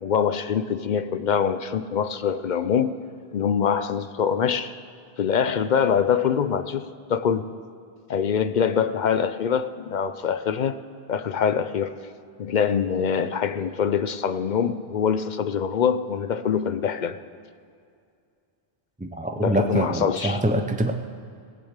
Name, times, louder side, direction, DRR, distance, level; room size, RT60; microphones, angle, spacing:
voice 1, 0.0-3.0 3.3-4.8 5.2-7.5 8.1-10.8 11.1-12.0 12.4-17.2 19.4-20.4, left 7 dB, 55° left, 12 dB, 0.6 m, -24 dB
voice 2, 19.0-20.9, right 1 dB, 10° right, 4 dB, 0.4 m, -24 dB
17.5 x 6.8 x 8.1 m, 2.3 s
omnidirectional pair, 1.0 m